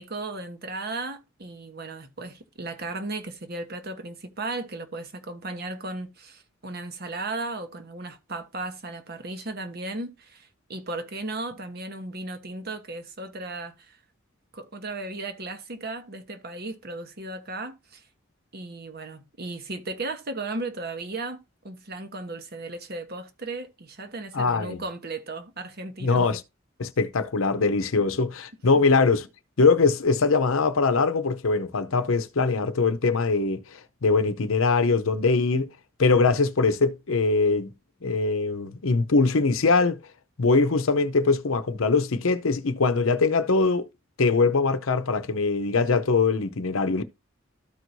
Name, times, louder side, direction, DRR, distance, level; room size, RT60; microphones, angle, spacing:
voice 1, 0.0-14.0 14.5-18.0 18.5-26.3 28.0-28.2, right 2 dB, 50° right, 1.1 m, -36 dB
voice 2, 24.3-24.8 26.0-26.4 26.8-29.3 29.6-35.7 36.0-37.7 38.0-40.0 40.4-43.8 44.2-47.0, left 4 dB, 85° left, 0.7 m, -22 dB
13.5 x 4.6 x 2.7 m
head